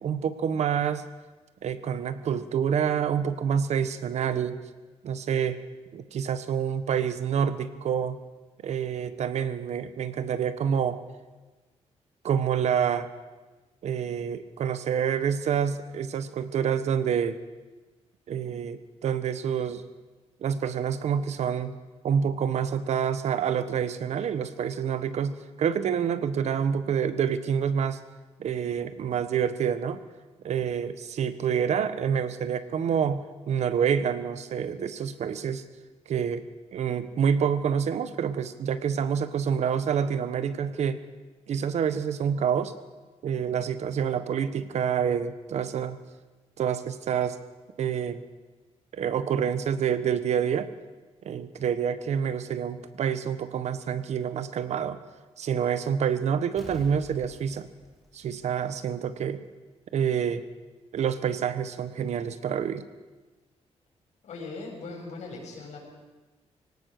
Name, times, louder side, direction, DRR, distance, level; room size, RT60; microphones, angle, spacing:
voice 1, 0.0-1.0 1.6-4.6 5.0-5.6 5.9-8.2 8.6-11.0 12.2-13.1 13.8-17.4 18.3-19.8 20.4-21.8 22.0-28.0 28.4-30.0 30.4-35.6 36.1-36.5 36.7-41.0 41.5-42.7 43.2-46.0 46.6-47.4 47.8-48.2 48.9-50.7 51.2-55.0 55.4-57.7 58.1-59.4 59.9-60.4 60.9-62.8, right 8 dB, 70° right, 12 dB, 1.3 m, -27 dB
Explosion, 56.6-59.2 59.5-59.6, left 1 dB, ahead, 3.8 m, -49 dB
voice 2, 64.2-65.8, left 3 dB, 80° left, 0 dB, 7.2 m, -39 dB
23.0 x 18.0 x 6.7 m, 1.2 s
wide cardioid pair, 155°, 12 cm